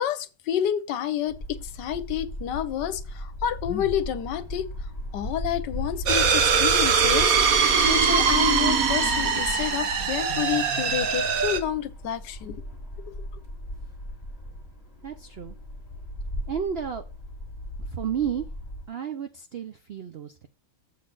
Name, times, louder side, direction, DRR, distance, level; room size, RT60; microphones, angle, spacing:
voice 1, 0.0-4.7 5.1-12.6 13.1-13.2, left 10 dB, 80° left, 1.4 m, -29 dB
sound 1, 1.3-18.9, left 1 dB, 15° left, 2.1 m, -36 dB
sound 2, 6.1-11.6, right 6 dB, 60° right, 1.3 m, -22 dB
voice 2, 15.0-15.6 16.5-17.0 17.9-18.5 18.9-20.5, right 8 dB, 75° right, 0.5 m, -31 dB
7.6 x 4.0 x 6.1 m
omnidirectional pair, 1.8 m